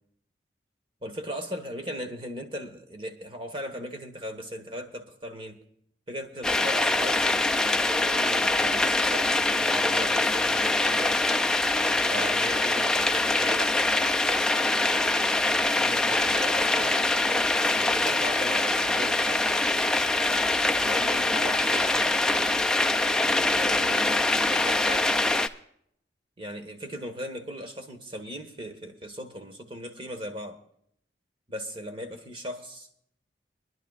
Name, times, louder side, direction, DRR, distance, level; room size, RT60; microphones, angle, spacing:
voice 1, 1.0-5.6 6.1-7.3 7.6-11.3 12.1-13.9 15.8-17.0 17.7-19.7 20.8-22.2 23.5-25.3 26.4-30.6 31.5-32.9, equal, 30° right, 5 dB, 1.4 m, -38 dB
sound 1, 6.4-25.5, left 2 dB, 5° left, 0.4 m, -24 dB
24.5 x 11.0 x 2.4 m, 0.69 s
head